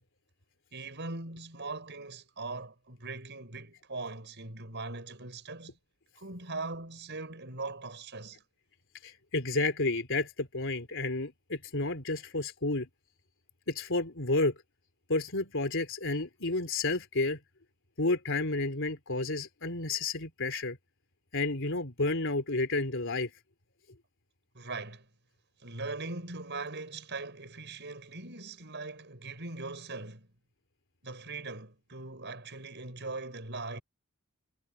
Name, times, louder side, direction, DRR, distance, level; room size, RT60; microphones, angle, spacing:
voice 1, 0.7-5.7 6.2-8.4 24.5-25.1 25.6-30.3 31.0-33.8, right 3 dB, 50° right, 7.1 m, -40 dB
voice 2, 9.0-12.9 13.7-14.5 15.1-17.4 18.0-20.8 21.3-23.3, left 2 dB, 60° left, 3.8 m, -31 dB
head